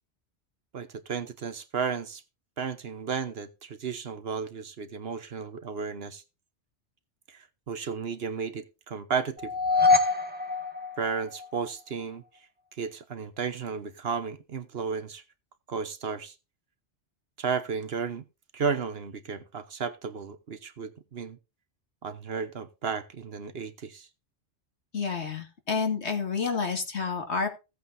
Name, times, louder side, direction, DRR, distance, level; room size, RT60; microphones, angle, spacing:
voice 1, 0.7-2.2 2.6-6.2 7.3-9.5 11.0-12.2 12.8-15.2 15.7-16.3 17.4-18.2 18.5-21.4 22.0-24.1, right 6 dB, 60° right, 1.1 m, -33 dB
sound 1, 9.4-11.7, left 4 dB, 10° right, 1.5 m, -25 dB
voice 2, 24.9-27.5, left 5 dB, 70° left, 2.2 m, -29 dB
16.0 x 8.4 x 2.6 m
omnidirectional pair, 1.2 m